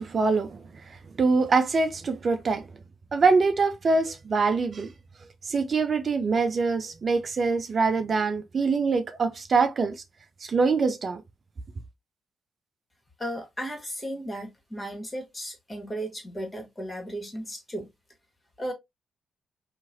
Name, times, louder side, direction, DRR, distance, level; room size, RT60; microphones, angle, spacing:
voice 1, 0.0-2.7 3.1-4.9 5.4-10.0 10.4-11.2, right 4 dB, 50° right, 0.4 m, -24 dB
voice 2, 13.2-17.9 18.6-18.7, equal, 25° left, 1.4 m, -35 dB
3.0 x 2.4 x 2.5 m
hypercardioid pair, 45°, 0 cm